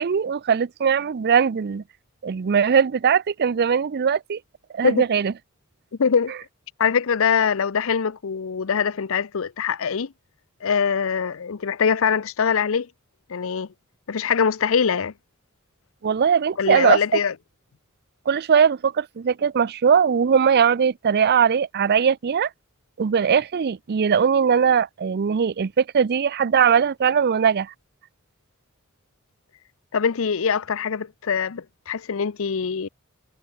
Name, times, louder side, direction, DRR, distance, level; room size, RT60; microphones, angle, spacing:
voice 1, 0.0-1.8 2.2-4.4 4.7-5.3 16.0-17.0 18.3-22.5 23.0-27.7, right 7 dB, 50° right, 0.4 m, -20 dB
voice 2, 6.0-6.3 6.8-10.1 10.6-12.9 13.3-13.7 14.1-15.1 16.6-17.3 29.9-32.9, left 6 dB, 65° left, 0.6 m, -23 dB
head